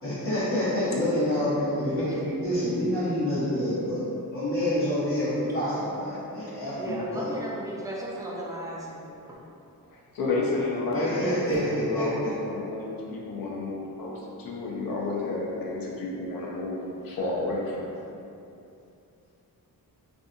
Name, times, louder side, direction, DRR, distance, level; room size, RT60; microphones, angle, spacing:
voice 1, 0.0-4.0 4.3-7.3 10.9-12.3, equal, 35° left, -13 dB, 1.0 m, -27 dB
voice 2, 6.6-9.4, right 1 dB, 10° right, -4 dB, 0.3 m, -35 dB
voice 3, 9.9-17.9, left 2 dB, 70° left, -3 dB, 0.6 m, -31 dB
2.5 x 2.4 x 2.6 m, 2.7 s
wide cardioid pair, 125°, 36 cm